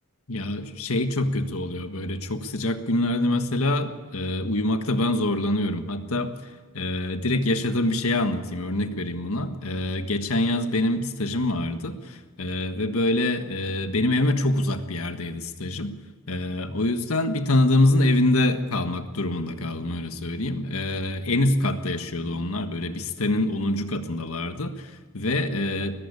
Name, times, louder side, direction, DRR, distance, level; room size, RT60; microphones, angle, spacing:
voice 1, 0.3-6.3 6.7-15.9 16.3-26.0, left 1 dB, 85° left, 8 dB, 1.6 m, -25 dB
20.5 x 15.0 x 8.6 m, 1.4 s
head